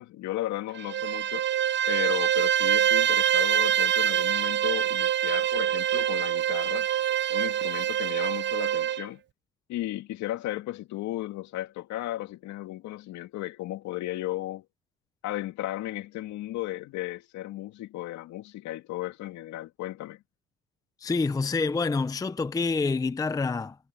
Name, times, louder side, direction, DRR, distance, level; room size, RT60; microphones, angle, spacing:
voice 1, 0.0-1.5 1.9-6.9 7.3-9.2 9.7-14.7 15.2-20.2, left 15 dB, 60° left, 2.5 m, -35 dB
Bowed string instrument, 0.8-9.1, right 10 dB, 35° right, 0.7 m, -25 dB
voice 2, 21.0-23.8, left 4 dB, 10° left, 0.7 m, -27 dB
supercardioid pair, 110°, 32 cm